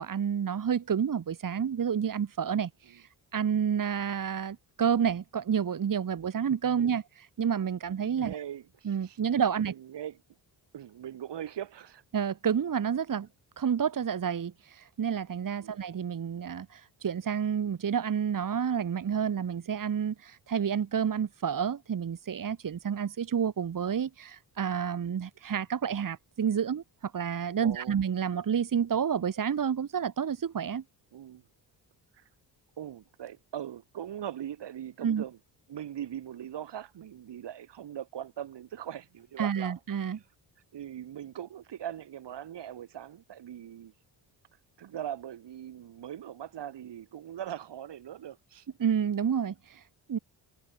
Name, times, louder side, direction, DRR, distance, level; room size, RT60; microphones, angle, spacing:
voice 1, 0.0-8.4 8.8-9.7 12.1-13.3 13.6-30.8 35.0-35.2 39.4-40.2 48.8-50.2, right 7 dB, 50° right, 2.5 m, -29 dB
voice 2, 8.2-9.2 9.6-10.2 10.7-12.0 15.6-15.8 27.6-28.0 31.1-31.4 32.1-32.3 32.8-35.4 35.7-39.8 40.7-43.9 44.8-48.7, right 10 dB, 70° right, 5.9 m, -41 dB
cardioid pair, 95°, 43 cm